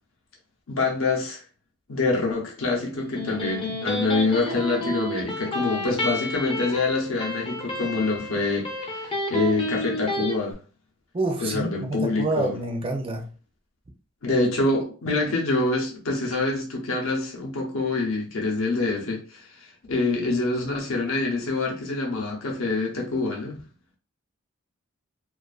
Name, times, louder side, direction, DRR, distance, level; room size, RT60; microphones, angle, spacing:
voice 1, 0.7-1.4 1.9-10.6 11.4-12.5 14.2-23.6, left 3 dB, 80° left, 0.7 m, -26 dB
Electric guitar, 3.0-10.4, left 1 dB, 25° left, 0.5 m, -31 dB
voice 2, 11.1-13.3, right 2 dB, 25° right, 0.4 m, -27 dB
2.4 x 2.4 x 2.3 m
head